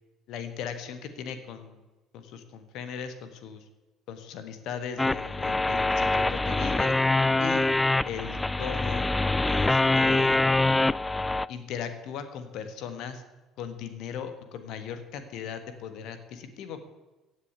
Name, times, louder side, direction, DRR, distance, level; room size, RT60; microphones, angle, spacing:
voice 1, 0.3-1.8 2.1-3.6 4.1-6.9 7.4-7.7 8.0-9.1 9.5-10.4 11.5-13.2 13.6-16.8, left 7 dB, 55° left, 9 dB, 1.5 m, -38 dB
sound 1, 5.0-11.5, left 2 dB, 15° left, 0.3 m, -24 dB
16.0 x 6.9 x 8.1 m, 1.1 s
figure-of-eight pair, 55°, 0 cm